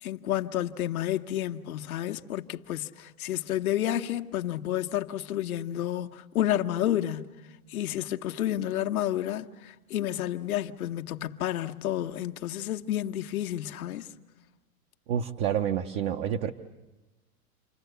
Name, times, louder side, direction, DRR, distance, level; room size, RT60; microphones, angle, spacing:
voice 1, 0.0-7.3 7.7-14.1, left 12 dB, 70° left, 1.4 m, -30 dB
voice 2, 15.1-16.5, right 9 dB, 40° right, 1.1 m, -28 dB
29.0 x 24.5 x 8.2 m
hypercardioid pair, 150°, 44 cm